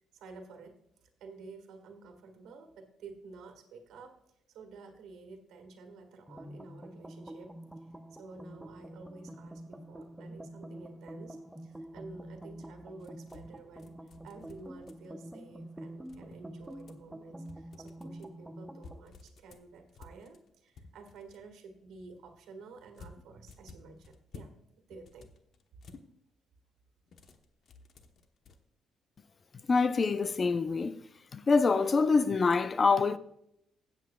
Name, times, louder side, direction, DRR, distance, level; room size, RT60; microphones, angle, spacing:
voice 1, 0.1-0.7 1.0-4.2 4.5-7.8 8.1-11.4 11.6-24.5 24.9-25.3, right 3 dB, 85° right, 1.7 m, -51 dB
sound 1, 6.3-19.0, right 1 dB, 5° right, 0.8 m, -47 dB
sound 2, 13.0-15.3 16.0-17.1 17.5-18.3 18.8-21.4 22.9-24.6 24.9-26.1 27.1-28.6, left 4 dB, 60° left, 1.0 m, -54 dB
voice 2, 29.7-31.0 31.3-33.2, left 4 dB, 40° left, 0.5 m, -25 dB
16.0 x 8.2 x 2.3 m
cardioid pair, 90°, 0 cm